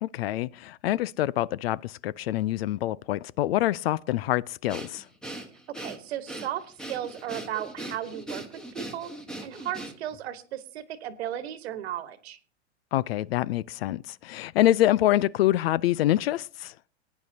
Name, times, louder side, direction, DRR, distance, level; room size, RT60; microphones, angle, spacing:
voice 1, 0.0-5.0 12.9-16.7, left 14 dB, 60° left, 0.4 m, -26 dB
Breathing, 4.7-10.2, right 1 dB, ahead, 1.3 m, -40 dB
voice 2, 5.8-9.1 9.4-12.4, right 11 dB, 65° right, 1.4 m, -35 dB
19.0 x 9.5 x 2.8 m
hypercardioid pair, 135°, 35 cm